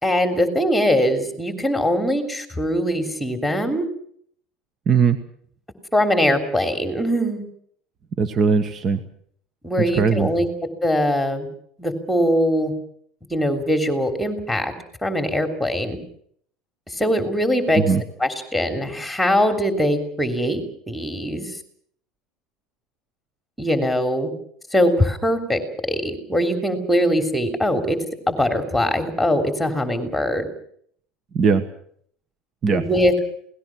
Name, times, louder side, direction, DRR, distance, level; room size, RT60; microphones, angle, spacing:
voice 1, 0.0-3.9 5.9-7.4 9.6-10.5 10.8-11.5 11.8-12.7 13.3-14.7 15.0-16.0 16.9-17.8 18.2-21.5 23.6-24.3 24.7-25.6 25.9-28.0 28.3-30.5 32.7-33.1, equal, ahead, 6 dB, 3.3 m, -21 dB
voice 2, 4.9-5.2 8.2-9.0 10.0-10.3 17.9-18.0 31.3-31.6 32.6-32.8, right 5 dB, 30° right, 11 dB, 1.3 m, -18 dB
28.0 x 18.5 x 6.2 m, 0.63 s
cardioid pair, 160°, 0 cm